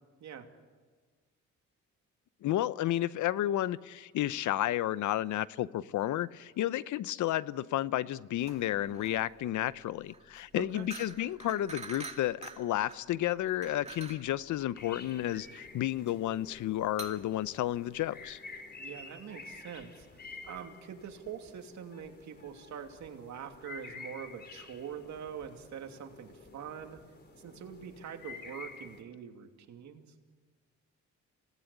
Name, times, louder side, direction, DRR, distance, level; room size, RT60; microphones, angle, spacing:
voice 1, 2.4-18.4, left 13 dB, 75° left, 17 dB, 0.8 m, -32 dB
sound 1, 8.4-18.4, right 4 dB, 20° right, 2.3 m, -48 dB
voice 2, 10.5-10.9 18.8-27.0 27.4-30.1, right 8 dB, 65° right, 5 dB, 2.7 m, -44 dB
sound 2, 14.8-29.0, left 4 dB, 35° left, 3.6 m, -50 dB
28.0 x 18.5 x 9.8 m, 1.5 s
cardioid pair, 90°, 30 cm